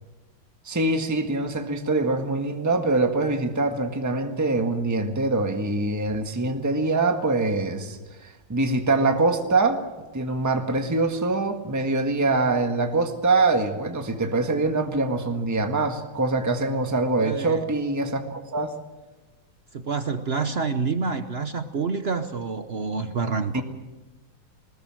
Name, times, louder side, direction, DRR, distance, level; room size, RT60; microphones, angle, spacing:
voice 1, 0.6-9.8 10.1-18.7 23.5-23.6, right 3 dB, 10° right, 5 dB, 1.3 m, -24 dB
voice 2, 17.2-17.7 19.7-23.6, right 4 dB, 60° right, 9 dB, 0.6 m, -28 dB
21.0 x 20.0 x 7.7 m, 1.2 s
omnidirectional pair, 2.3 m